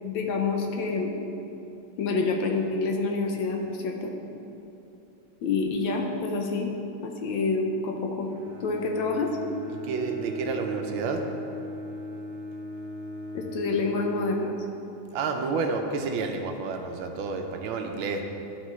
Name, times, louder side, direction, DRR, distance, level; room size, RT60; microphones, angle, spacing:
voice 1, 0.0-1.1 2.0-4.1 5.4-6.7 7.0-8.3 8.6-9.3 13.3-14.5, left 3 dB, 70° left, 1 dB, 1.3 m, -27 dB
Bowed string instrument, 8.2-14.9, left 1 dB, 35° right, 0.8 m, -38 dB
voice 2, 9.7-11.2 15.1-18.2, right 4 dB, 75° right, 4 dB, 1.4 m, -30 dB
11.5 x 4.3 x 3.1 m, 2.8 s
omnidirectional pair, 2.4 m